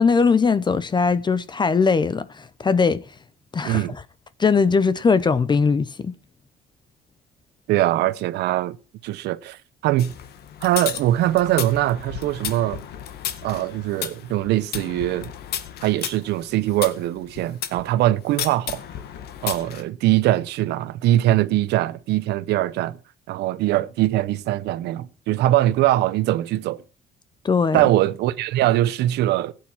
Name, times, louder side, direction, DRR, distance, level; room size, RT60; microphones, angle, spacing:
voice 1, 0.0-3.0 3.5-3.8 4.4-6.1 27.4-27.8, left 5 dB, 25° left, 0.7 m, -20 dB
voice 2, 3.6-3.9 7.7-8.8 9.0-10.2 10.6-12.8 13.4-15.3 15.8-18.8 19.4-23.0 23.3-26.8 27.7-29.5, right 14 dB, 80° right, 1.0 m, -22 dB
sound 1, 10.0-17.8 18.4-19.8, left 10 dB, 70° left, 1.8 m, -33 dB
16.0 x 9.4 x 4.6 m
cardioid pair, 110°, 17 cm